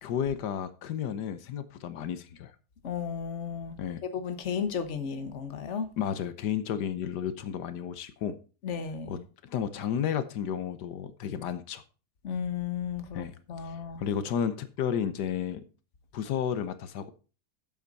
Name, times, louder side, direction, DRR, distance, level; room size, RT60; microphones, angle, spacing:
voice 1, 0.0-2.5 3.8-4.0 6.0-8.4 9.1-11.8 13.1-13.3 13.6-15.6 16.1-17.1, left 8 dB, 85° left, 1.5 m, -32 dB
voice 2, 2.8-5.9 8.6-9.2 12.2-14.0, left 7 dB, 50° left, 1.4 m, -34 dB
12.5 x 7.9 x 4.1 m
omnidirectional pair, 1.7 m